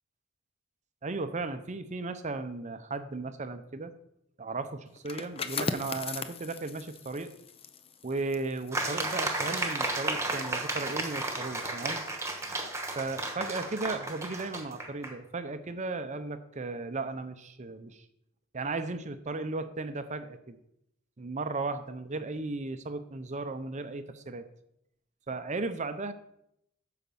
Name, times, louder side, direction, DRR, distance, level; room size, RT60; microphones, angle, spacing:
voice 1, 1.0-3.9 4.4-7.3 8.0-12.0 13.0-18.1 18.5-20.6 21.2-24.5 25.3-26.1, right 3 dB, 35° right, 10 dB, 0.6 m, -35 dB
sound 1, 5.0-10.5 10.8-11.1, left 4 dB, 25° left, 0.6 m, -39 dB
sound 2, 8.7-15.1, right 2 dB, 15° right, 1.4 m, -33 dB
9.1 x 5.8 x 6.9 m, 0.77 s
head